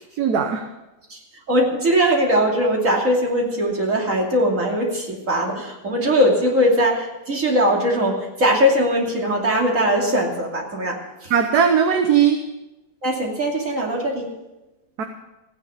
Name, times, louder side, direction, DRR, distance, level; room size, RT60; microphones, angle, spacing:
voice 1, 0.2-0.6 11.3-12.4 15.0-15.1, right 7 dB, 60° right, 5 dB, 1.5 m, -18 dB
voice 2, 1.5-11.3 13.0-14.3, equal, 40° right, -1 dB, 3.1 m, -20 dB
16.0 x 10.0 x 6.9 m, 0.99 s
omnidirectional pair, 2.1 m